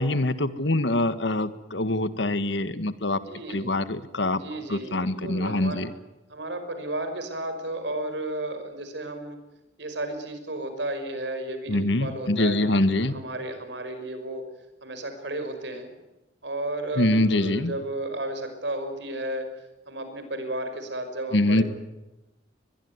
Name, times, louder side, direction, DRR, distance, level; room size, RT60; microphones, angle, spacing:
voice 1, 0.0-3.2 3.5-4.4 4.7-5.9 11.7-13.1 17.0-17.7 21.3-21.6, left 1 dB, 70° left, 13 dB, 1.6 m, -24 dB
voice 2, 3.3-3.8 4.3-5.8 6.3-9.4 9.8-14.5 14.8-15.9 16.4-19.5 19.9-21.6, right 1 dB, 65° right, 8 dB, 5.6 m, -33 dB
23.0 x 21.5 x 9.6 m, 1.0 s
head